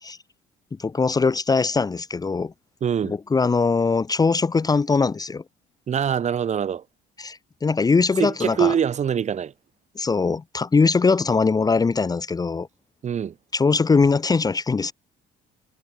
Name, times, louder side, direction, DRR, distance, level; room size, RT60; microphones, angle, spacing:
voice 1, 0.8-2.5 3.0-5.4 7.2-8.8 9.9-12.7 13.5-14.9, left 4 dB, 20° left, 1.1 m, -21 dB
voice 2, 2.8-3.2 5.9-6.8 8.2-9.5 13.0-13.3, right 8 dB, 45° right, 2.4 m, -24 dB
cardioid pair, 110°, 17 cm